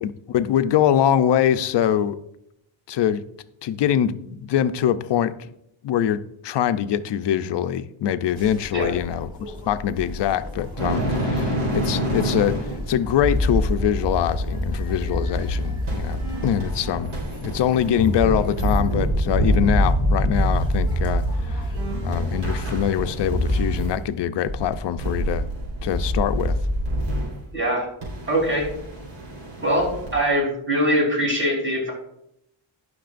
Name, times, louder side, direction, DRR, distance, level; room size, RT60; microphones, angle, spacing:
voice 1, 0.0-2.2 2.9-3.2 3.6-5.3 5.8-12.6 12.9-17.1 17.4-21.6 22.0-25.5 25.8-26.6, left 10 dB, 60° left, 11 dB, 0.6 m, -23 dB
sound 1, 8.3-23.3, left 1 dB, 10° right, 3.2 m, -34 dB
sound 2, 10.8-24.1 24.4-27.4 28.0-30.2, equal, 85° right, 3.8 m, -26 dB
voice 2, 27.5-27.9 28.3-28.7 29.6-31.9, equal, 25° right, -2 dB, 3.3 m, -22 dB
18.0 x 6.1 x 2.5 m, 0.78 s
wide cardioid pair, 165°, 48 cm